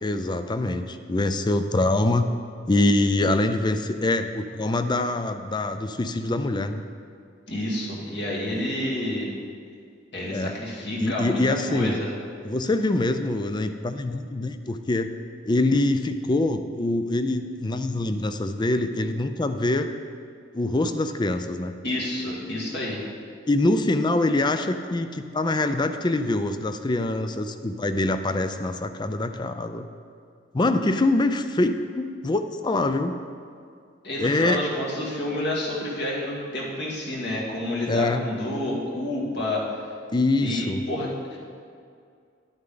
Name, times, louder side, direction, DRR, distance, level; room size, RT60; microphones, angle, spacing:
voice 1, 0.0-2.3 2.7-6.8 8.5-8.6 10.3-10.6 11.0-12.0 12.4-15.1 15.4-19.9 20.5-21.7 23.5-29.9 30.5-33.2 34.2-34.6 37.9-38.2 40.1-40.8, left 2 dB, 25° left, 9 dB, 0.4 m, -24 dB
voice 2, 7.5-9.3 10.1-12.1 21.8-23.0 34.0-39.8 40.4-41.4, left 1 dB, 60° left, -4 dB, 2.2 m, -29 dB
11.0 x 8.9 x 3.9 m, 2.3 s
head